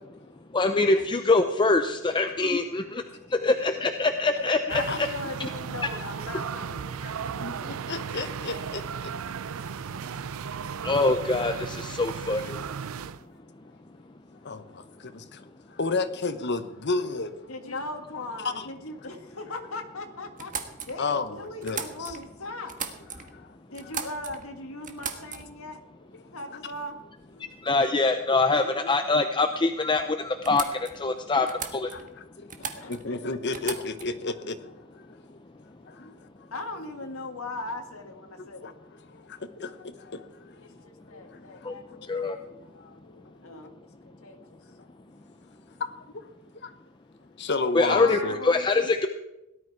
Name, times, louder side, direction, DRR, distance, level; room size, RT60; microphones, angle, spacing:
voice 1, 0.5-3.0 3.3-5.1 5.4-5.5 10.8-12.6 27.6-31.9 41.6-41.7 42.1-42.4 47.7-49.1, left 3 dB, 20° left, 7 dB, 0.6 m, -24 dB
voice 2, 4.7-6.9 7.3-7.6 9.2-9.3 17.5-20.5 20.9-22.7 23.7-25.8 26.3-27.0 27.3-27.5 28.6-28.7 32.6-33.4 36.0-36.1 36.5-38.7 40.6-42.4 42.7-43.0 43.4-43.7 44.0-44.6 47.9-48.9, left 2 dB, 75° left, 4 dB, 1.9 m, -39 dB
sound 1, 4.7-13.2, right 6 dB, 75° right, 0.5 m, -35 dB
voice 3, 7.0-9.1 14.4-17.3 18.5-18.7 21.0-21.3 21.6-22.2 23.2-23.5 23.8-23.9 26.5-26.6 31.2-31.3 31.9-35.4 35.8-36.3 38.4-38.7 39.1-40.7 41.1-42.3 42.6-43.3 45.8-46.3 46.6-46.7 47.4-48.4, left 3 dB, 55° left, 10 dB, 1.1 m, -33 dB
sound 2, 20.4-22.3 22.6-23.4 23.7-24.5 24.8-25.7 26.7-26.8 27.2-27.6 29.6-29.7 29.9-30.0 30.4-31.1 31.5-32.2 32.5-33.1 33.5-34.2, right 6 dB, 40° right, 1.5 m, -38 dB
17.5 x 12.0 x 4.8 m, 0.94 s
head